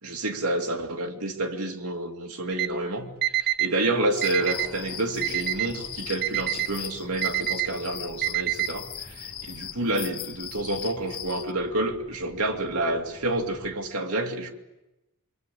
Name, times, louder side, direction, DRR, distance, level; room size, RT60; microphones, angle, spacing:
voice 1, 0.0-14.5, right 2 dB, 80° right, 2.8 m, -29 dB
Alarm, 2.5-2.7 3.2-3.7 4.2-4.7 5.2-5.7 6.2-6.7 7.2-7.7 8.2-8.7, right 15 dB, 45° right, 0.9 m, -26 dB
sound 1, 4.1-11.5, left 11 dB, 70° left, 0.9 m, -39 dB
sound 2, 4.3-13.8, equal, 5° right, 4.4 m, -48 dB
25.0 x 24.0 x 8.7 m
head